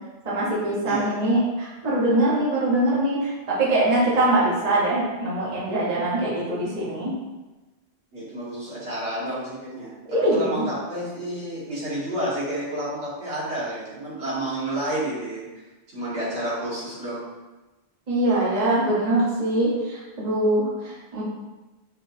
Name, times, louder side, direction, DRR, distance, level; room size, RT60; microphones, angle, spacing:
voice 1, 0.2-7.1 10.1-10.6 18.1-21.2, right 1 dB, 40° right, -6 dB, 1.1 m, -23 dB
voice 2, 0.9-1.2 4.1-4.2 8.1-9.9 10.3-15.6 15.9-17.2, right 1 dB, 90° right, -8 dB, 1.8 m, -30 dB
4.4 x 3.9 x 2.6 m, 1.1 s
omnidirectional pair, 1.1 m